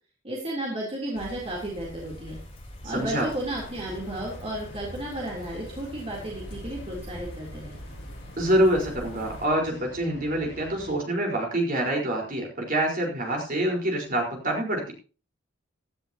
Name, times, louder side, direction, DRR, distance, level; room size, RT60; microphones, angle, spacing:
voice 1, 0.2-2.4 2.8-7.8, right 1 dB, 30° right, -3 dB, 3.5 m, -33 dB
sound 1, 1.1-9.5, equal, 30° left, 4.1 m, -44 dB
voice 2, 2.9-3.3 8.4-14.9, right 1 dB, 45° right, 0 dB, 4.6 m, -26 dB
sound 2, 3.2-10.9, equal, 60° left, 5.6 m, -45 dB
16.0 x 13.0 x 2.9 m, 0.37 s
head